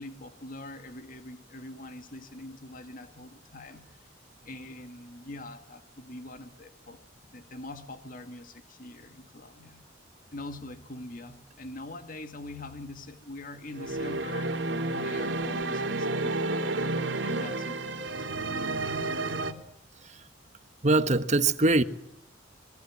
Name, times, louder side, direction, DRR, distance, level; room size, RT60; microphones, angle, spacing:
voice 1, 0.0-4.1 4.4-7.0 7.3-9.8 10.3-14.6 15.0-16.8 17.2-18.4, left 2 dB, 45° left, 2.0 m, -43 dB
sound 1, 13.7-19.5, right 2 dB, 75° right, 3.1 m, -31 dB
voice 2, 20.8-21.8, right 2 dB, 40° right, 1.4 m, -22 dB
26.5 x 23.0 x 7.4 m
head